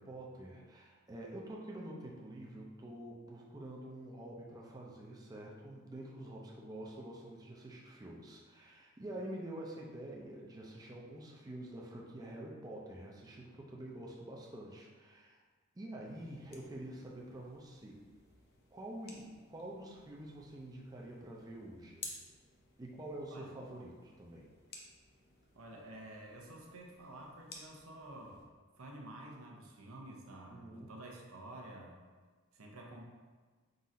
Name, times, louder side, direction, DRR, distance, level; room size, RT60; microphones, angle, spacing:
voice 1, 0.0-15.4 15.8-18.0 18.7-22.1 22.8-24.5 30.5-30.9, right 1 dB, 20° right, -3 dB, 0.4 m, -47 dB
sound 1, 16.0-28.4, left 3 dB, 50° left, 0.6 m, -56 dB
voice 2, 25.6-28.4 28.8-32.0 32.5-33.1, right 1 dB, 80° right, 0 dB, 0.7 m, -50 dB
3.8 x 2.5 x 4.1 m, 1.4 s
head